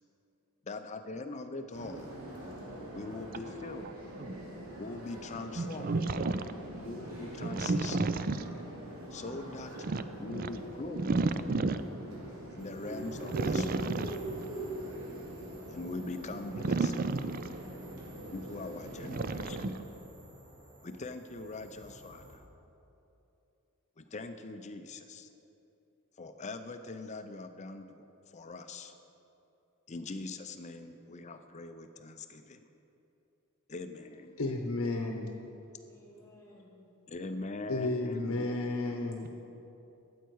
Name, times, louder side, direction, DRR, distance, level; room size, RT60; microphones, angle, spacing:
voice 1, 0.7-2.1 2.9-3.9 4.8-5.9 6.8-8.1 9.1-9.7 10.2-11.1 12.5-13.9 15.7-16.9 18.3-19.6 20.8-22.4 24.0-25.3 26.2-28.9 29.9-32.6 33.7-34.4 37.1-38.5, left 3 dB, 30° left, 8 dB, 0.6 m, -42 dB
sound 1, 1.7-19.7, right 1 dB, 75° right, 2.9 m, -45 dB
voice 2, 5.6-6.4 7.4-8.6 9.8-10.5 11.0-11.8 13.3-14.4 16.5-17.5 19.0-19.8, right 3 dB, 40° right, 12 dB, 0.4 m, -32 dB
sound 2, 12.6-22.3, right 1 dB, 20° right, 2.9 m, -45 dB
voice 3, 34.4-35.3 37.7-39.2, left 2 dB, 70° left, 2 dB, 0.9 m, -32 dB
voice 4, 35.9-36.9 38.8-39.3, equal, 15° left, -4 dB, 1.9 m, -56 dB
13.5 x 8.2 x 4.7 m, 2.9 s
head